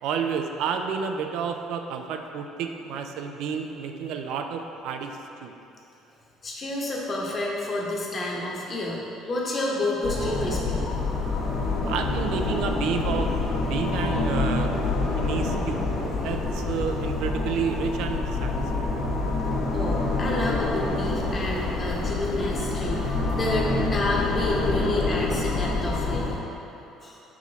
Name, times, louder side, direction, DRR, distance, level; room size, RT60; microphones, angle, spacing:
voice 1, 0.0-5.5 11.9-15.8 16.2-18.5, right 6 dB, 70° right, 5 dB, 0.4 m, -30 dB
voice 2, 6.4-10.8 19.7-26.4 27.0-27.2, left 1 dB, 25° left, -3 dB, 1.0 m, -29 dB
sound 1, 10.0-26.4, left 3 dB, 70° left, 1.4 m, -27 dB
5.6 x 4.8 x 4.0 m, 2.9 s
cardioid pair, 150°, 0 cm